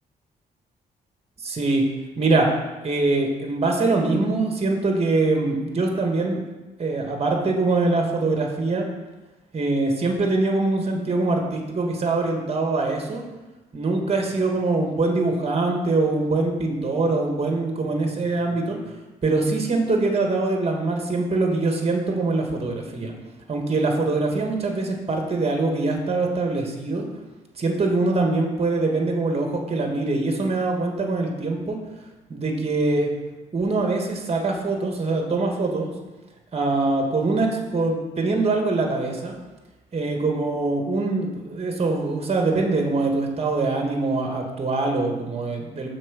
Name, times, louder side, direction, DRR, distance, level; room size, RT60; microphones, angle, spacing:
voice 1, 1.4-1.8 2.2-2.5 2.8-6.4 6.8-8.9 9.5-13.2 13.7-18.8 19.2-23.1 23.5-27.1 27.6-31.8 32.3-33.1 33.5-35.9 36.5-39.3 39.9-45.9, right 3 dB, 35° right, 2 dB, 1.6 m, -23 dB
6.0 x 4.5 x 6.2 m, 1.1 s
cardioid pair, 70°, 17 cm